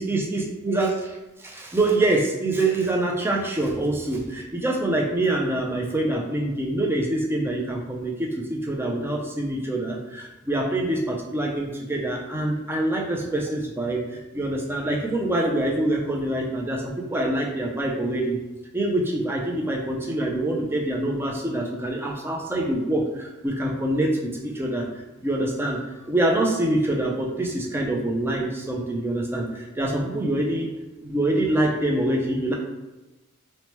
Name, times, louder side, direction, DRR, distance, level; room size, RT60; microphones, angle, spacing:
voice 1, 0.0-16.8 17.1-18.4 18.7-24.9 25.2-30.7 31.0-32.5, right 1 dB, 10° right, 0 dB, 0.4 m, -25 dB
2.9 x 2.1 x 3.0 m, 1.1 s
head